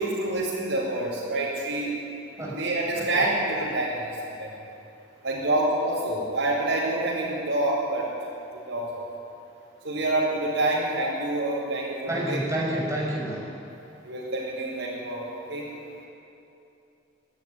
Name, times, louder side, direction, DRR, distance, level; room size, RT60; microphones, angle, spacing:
voice 1, 0.0-1.9 2.3-4.0 4.4-4.5 5.2-8.0 8.7-9.0 9.8-12.4 14.0-15.6, right 2 dB, 80° right, -7 dB, 4.6 m, -27 dB
voice 2, 12.1-13.5, right 1 dB, 15° right, -4 dB, 5.7 m, -29 dB
27.0 x 11.5 x 9.9 m, 2.9 s
head